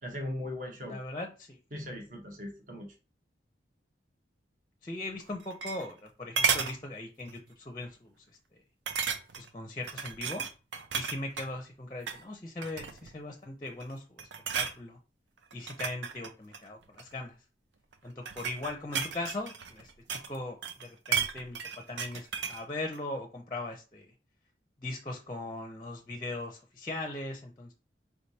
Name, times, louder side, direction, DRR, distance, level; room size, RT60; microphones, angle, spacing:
voice 1, 0.0-1.0 1.7-2.9, left 1 dB, 45° right, 2 dB, 0.9 m, -39 dB
voice 2, 0.9-1.6 4.8-8.1 9.4-10.4 10.9-14.3 14.5-15.0 15.5-17.4 18.0-24.1 24.8-27.7, left 2 dB, 20° left, 3 dB, 0.5 m, -39 dB
sound 1, 5.2-6.1 6.4-6.8 7.3-7.5 7.8-7.9 8.9-9.5 9.9-11.5 12.0-12.2 12.6-13.1 13.7-13.9 14.2-14.8 15.5-17.1 17.9-20.4 20.6-22.6 22.9-23.0, right 6 dB, 80° right, 0.5 m, -33 dB
4.7 x 3.2 x 2.7 m, 0.33 s
head